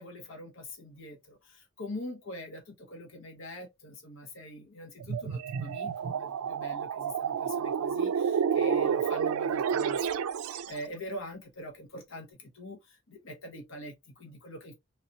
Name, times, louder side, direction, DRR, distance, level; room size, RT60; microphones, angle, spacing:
voice 1, 0.0-14.7, left 1 dB, 65° left, 0.9 m, -44 dB
sound 1, 5.0-10.8, right 7 dB, 85° right, 0.3 m, -30 dB
3.1 x 2.9 x 2.6 m
head